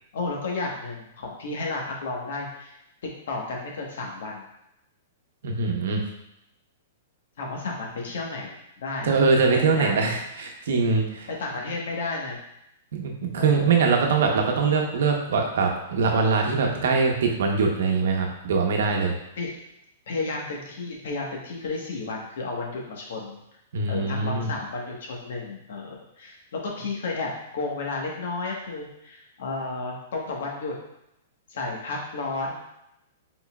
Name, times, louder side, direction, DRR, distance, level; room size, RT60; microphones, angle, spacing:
voice 1, 0.1-2.8 3.0-4.5 7.4-10.1 11.3-12.4 13.4-13.8 19.3-19.6 20.1-23.4 23.9-30.8 31.5-32.6, left 3 dB, 70° left, -1 dB, 1.1 m, -32 dB
voice 2, 5.4-6.0 9.0-11.3 12.9-19.1 23.7-24.5, right 4 dB, 70° right, 2 dB, 0.8 m, -23 dB
4.5 x 3.8 x 2.3 m, 0.85 s
hypercardioid pair, 150°, 0 cm